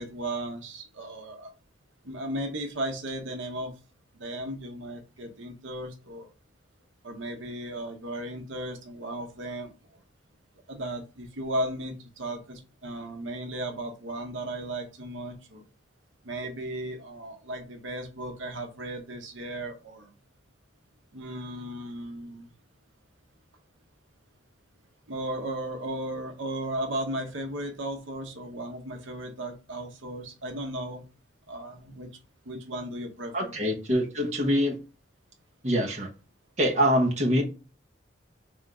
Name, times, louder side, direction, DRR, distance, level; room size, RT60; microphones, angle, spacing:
voice 1, 0.0-1.5 2.0-3.7 4.1-6.3 7.0-9.7 10.7-15.6 16.2-20.1 21.1-22.5 25.1-31.0 31.5-32.1 32.4-33.6, right 1 dB, 80° right, 0.8 m, -35 dB
voice 2, 33.3-34.8 35.6-36.1 36.6-37.4, equal, 35° right, 1.1 m, -24 dB
3.8 x 3.6 x 3.4 m
head